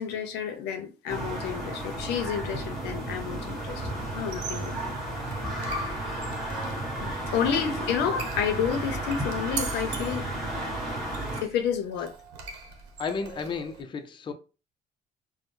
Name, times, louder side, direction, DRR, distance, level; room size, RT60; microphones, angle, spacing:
voice 1, 0.0-4.9 7.0-10.3 11.4-12.1, left 7 dB, 90° left, 0.7 m, -30 dB
sound 1, 1.1-11.4, right 1 dB, ahead, 1.3 m, -33 dB
sound 2, 2.4-8.1 8.3-11.3, left 1 dB, 25° right, 1.6 m, -43 dB
Squeak, 4.2-13.8, right 5 dB, 90° right, 0.8 m, -42 dB
voice 2, 6.2-6.9 7.3-7.5 13.0-14.3, left 5 dB, 30° left, 0.5 m, -35 dB
4.2 x 2.1 x 3.2 m
cardioid pair, 110°, 17 cm